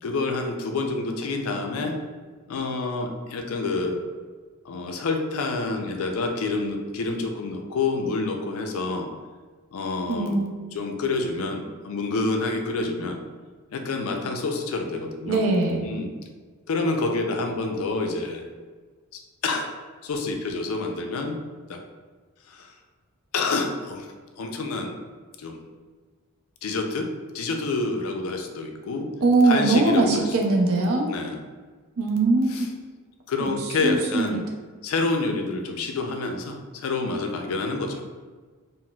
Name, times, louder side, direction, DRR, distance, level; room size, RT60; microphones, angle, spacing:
voice 1, 0.0-2.0 2.5-4.0 4.6-9.1 9.7-10.4 10.7-13.2 13.7-15.4 15.8-16.1 16.7-18.5 19.1-19.7 20.0-21.4 21.7-21.8 22.5-22.7 23.3-24.1 24.4-25.0 25.4-25.6 26.6-27.1 27.3-29.1 29.4-30.4 30.8-31.4 32.5-32.7 33.3-34.4 34.8-38.0, left 3 dB, 80° left, 4 dB, 0.4 m, -28 dB
voice 2, 10.1-10.6 15.3-15.9 29.2-31.1 32.0-32.7 33.4-33.5 33.8-34.4, right 3 dB, 80° right, 1 dB, 0.5 m, -21 dB
3.9 x 2.1 x 2.2 m, 1.4 s
head